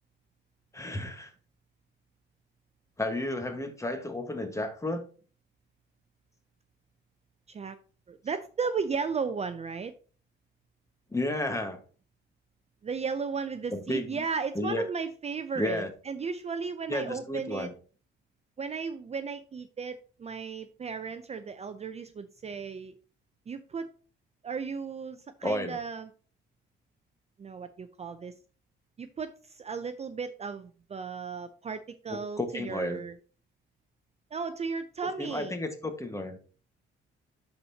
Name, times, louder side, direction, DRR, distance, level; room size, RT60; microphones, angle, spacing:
voice 1, 0.7-1.3 3.0-5.1 11.1-11.8 13.7-14.2 14.5-14.8 15.5-15.9 16.9-17.7 25.4-25.8 32.1-33.0 35.2-36.4, left 1 dB, 15° left, 6 dB, 1.5 m, -32 dB
voice 2, 8.1-9.9 12.8-17.7 18.6-22.9 23.5-23.9 24.4-26.1 27.4-28.4 29.0-33.2 34.3-35.6, right 5 dB, 35° right, 10 dB, 0.5 m, -35 dB
12.0 x 4.3 x 2.8 m, 0.39 s
cardioid pair, 90°, 20 cm